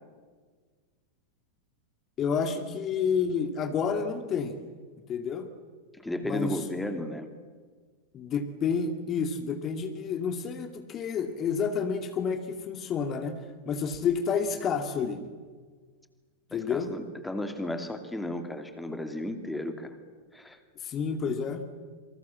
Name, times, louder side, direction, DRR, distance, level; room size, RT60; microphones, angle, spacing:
voice 1, 2.2-4.6 5.1-5.5 6.2-6.6 8.1-15.2 16.5-16.9 20.8-21.6, left 6 dB, 30° left, 7 dB, 2.4 m, -29 dB
voice 2, 5.9-7.3 16.5-20.0 20.3-20.6, left 1 dB, 5° left, 7 dB, 2.7 m, -34 dB
28.0 x 25.5 x 7.6 m, 1.5 s
figure-of-eight pair, 90°, 0 cm